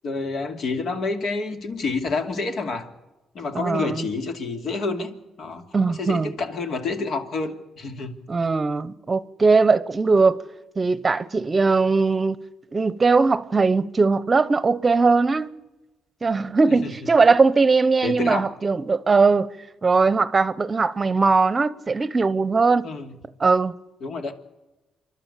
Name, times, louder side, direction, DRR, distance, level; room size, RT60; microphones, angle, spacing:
voice 1, 0.0-2.9 3.3-8.2 16.8-16.9 18.0-18.5 22.8-23.1 24.0-24.3, left 3 dB, 65° left, 2.6 m, -28 dB
voice 2, 3.5-4.1 5.7-6.3 8.3-10.4 10.8-12.4 12.7-15.5 16.2-19.5 19.8-22.9 23.4-23.7, right 4 dB, 30° right, 0.9 m, -20 dB
27.5 x 12.0 x 8.5 m
cardioid pair, 90°, 0 cm